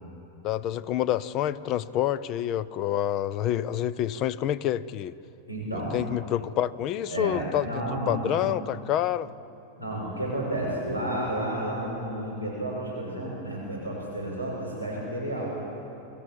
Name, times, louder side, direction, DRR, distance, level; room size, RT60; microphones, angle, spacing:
voice 1, 0.4-5.1 5.9-7.8 8.1-9.3, left 11 dB, 35° left, 17 dB, 0.6 m, -27 dB
voice 2, 5.5-6.0 7.1-8.5 9.8-15.5, right 1 dB, 80° left, -3 dB, 6.3 m, -31 dB
24.0 x 14.5 x 8.7 m, 2.9 s
figure-of-eight pair, 90°, 0 cm